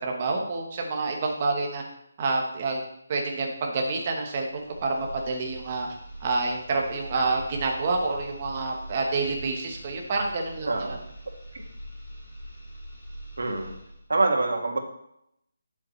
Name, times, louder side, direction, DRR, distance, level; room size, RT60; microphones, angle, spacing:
voice 1, 0.0-1.8 2.2-2.8 3.1-5.9 6.2-10.8, right 3 dB, 20° right, 1 dB, 1.0 m, -28 dB
sound 1, 4.5-14.1, equal, 25° left, 2.3 m, -43 dB
voice 2, 10.7-11.0 13.4-13.7 14.1-14.8, right 2 dB, 90° right, 2 dB, 1.8 m, -25 dB
9.6 x 7.2 x 3.2 m, 0.76 s
hypercardioid pair, 180°, 0 cm